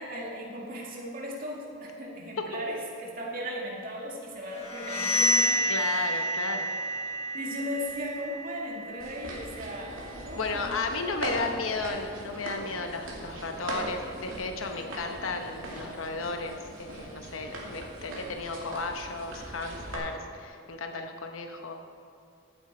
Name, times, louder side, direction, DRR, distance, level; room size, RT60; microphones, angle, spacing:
voice 1, 0.0-6.1 7.3-11.1, equal, 45° right, -2 dB, 2.2 m, -37 dB
sound 1, 4.5-10.2, equal, 30° left, 2.0 m, -30 dB
voice 2, 5.7-6.7 10.4-21.7, left 3 dB, 85° left, 4 dB, 0.9 m, -34 dB
sound 2, 9.0-20.0, right 1 dB, 85° right, 2.5 m, -40 dB
15.0 x 8.9 x 4.3 m, 2.4 s
head